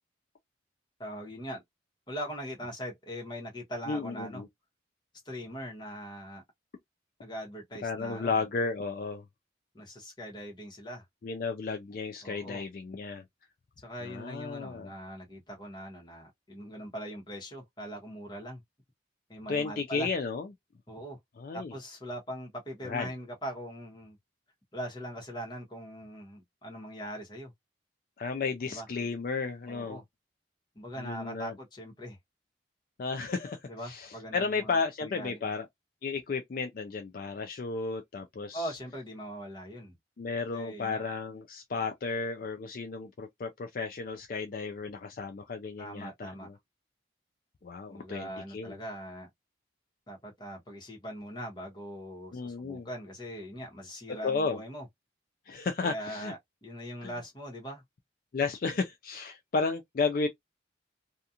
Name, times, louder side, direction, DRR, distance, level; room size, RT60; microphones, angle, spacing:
voice 1, 1.0-1.6 2.1-4.4 5.2-6.4 7.2-8.4 9.7-11.0 12.2-12.6 13.8-18.6 19.3-20.1 20.9-21.2 21.5-24.2 24.7-27.5 28.6-28.9 29.7-30.0 30.7-32.2 33.6-35.4 38.5-39.9 40.5-41.0 45.8-46.5 47.9-49.3 50.1-54.9 55.8-57.8, equal, 25° left, 1.0 m, -41 dB
voice 2, 3.9-4.5 7.8-9.2 11.2-13.2 14.0-14.9 19.5-20.5 21.4-21.7 22.8-23.1 28.2-30.0 31.0-31.5 33.0-35.7 36.0-38.7 40.2-46.5 47.6-48.8 52.3-52.9 54.2-54.6 55.5-56.3 57.0-57.1 58.3-60.3, left 4 dB, 50° left, 0.3 m, -33 dB
2.8 x 2.4 x 2.4 m
head